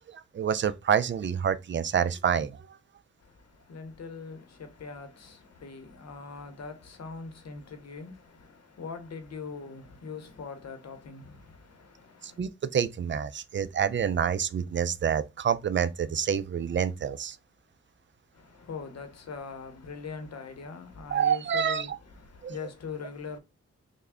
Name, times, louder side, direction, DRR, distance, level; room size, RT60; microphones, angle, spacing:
voice 1, 0.1-2.6 12.2-17.4 21.1-21.9 22.4-22.5, right 8 dB, 40° right, 0.4 m, -27 dB
voice 2, 3.2-12.4 18.3-23.4, left 5 dB, 60° left, 0.9 m, -42 dB
3.4 x 2.2 x 3.5 m
cardioid pair, 55°, 29 cm